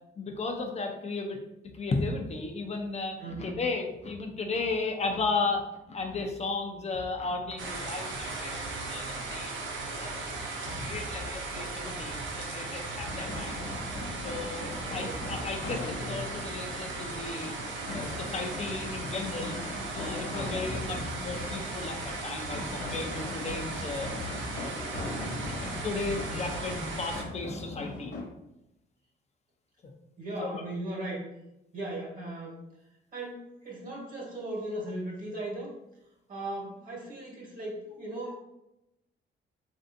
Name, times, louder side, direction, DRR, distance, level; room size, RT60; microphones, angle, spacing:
voice 1, 0.2-1.4 1.7-9.5 9.9-10.2 10.7-13.7 14.2-17.6 17.9-19.6 19.9-24.1 24.6-24.7 25.4-28.1 30.4-30.6, left 3 dB, 35° left, 3 dB, 0.5 m, -34 dB
voice 2, 3.2-3.6 14.8-15.3 30.2-31.3 31.7-32.6 33.1-35.7 36.3-38.4, right 1 dB, 45° right, -2 dB, 1.3 m, -37 dB
sound 1, 7.6-27.2, right 3 dB, 75° right, 0.7 m, -37 dB
sound 2, 13.1-28.2, left 2 dB, 55° left, 1.2 m, -39 dB
3.3 x 2.6 x 2.5 m, 0.88 s
cardioid pair, 90°, 20 cm